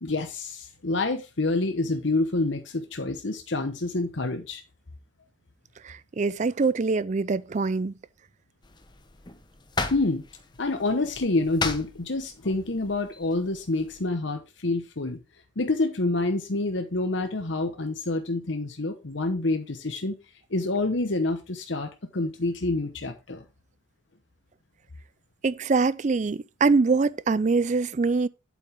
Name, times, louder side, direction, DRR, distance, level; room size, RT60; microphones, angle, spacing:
voice 1, 0.0-4.6 9.9-10.2 10.6-15.2 15.6-20.2 20.5-23.4, left 2 dB, 65° left, 1.0 m, -27 dB
voice 2, 5.8-7.9 25.4-28.3, right 4 dB, 35° right, 0.4 m, -24 dB
sound 1, 8.6-14.0, left 3 dB, 20° left, 0.9 m, -36 dB
8.4 x 7.9 x 3.5 m
head